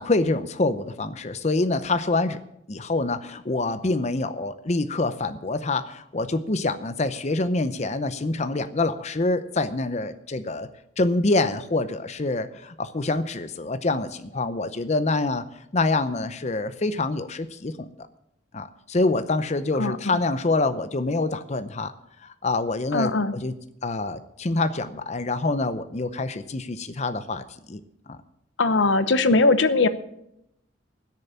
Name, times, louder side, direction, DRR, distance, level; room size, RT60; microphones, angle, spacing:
voice 1, 0.0-2.4 2.7-10.7 11.0-15.4 15.7-17.9 18.5-21.9 22.4-23.5 23.8-27.8 28.1-28.2, left 2 dB, 40° left, 11 dB, 0.6 m, -26 dB
voice 2, 19.8-20.2 22.9-23.3 28.6-29.9, left 3 dB, 85° left, 12 dB, 0.9 m, -20 dB
16.0 x 6.8 x 8.5 m, 0.80 s
head